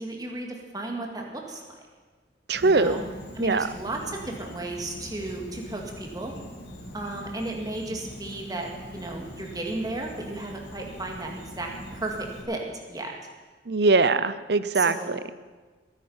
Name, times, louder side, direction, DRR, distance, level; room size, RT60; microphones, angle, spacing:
voice 1, 0.0-1.8 2.6-3.0 3.3-6.3 6.9-13.1 14.7-15.1, right 2 dB, 20° right, 1 dB, 2.1 m, -34 dB
Insect, 2.5-12.4, equal, 70° left, 2.3 m, -43 dB
voice 2, 2.5-3.0 3.4-3.7 13.7-15.3, right 3 dB, 60° right, 14 dB, 0.6 m, -22 dB
21.5 x 9.8 x 5.6 m, 1.3 s
head